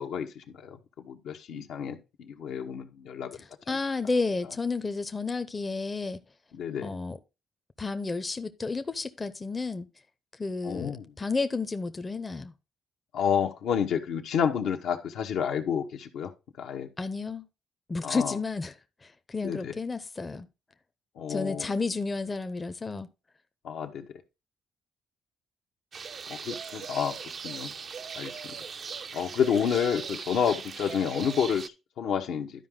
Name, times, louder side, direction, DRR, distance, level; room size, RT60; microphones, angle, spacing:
voice 1, 0.0-3.4 3.7-3.8 6.5-6.9 10.6-11.1 13.1-16.3 16.6-16.9 18.0-18.4 19.4-19.7 21.2-21.7 23.6-24.1 26.3-27.2 27.4-27.7 28.1-28.6 29.1-32.7, left 7 dB, 80° left, 1.1 m, -30 dB
voice 2, 3.3-6.2 6.8-7.2 7.8-9.9 10.4-12.5 17.0-17.5 17.9-18.7 19.0-20.5 21.3-23.1, left 3 dB, 25° left, 0.6 m, -31 dB
sound 1, 25.9-31.7, right 6 dB, 50° right, 0.5 m, -39 dB
11.5 x 4.8 x 3.7 m
cardioid pair, 90°, 0 cm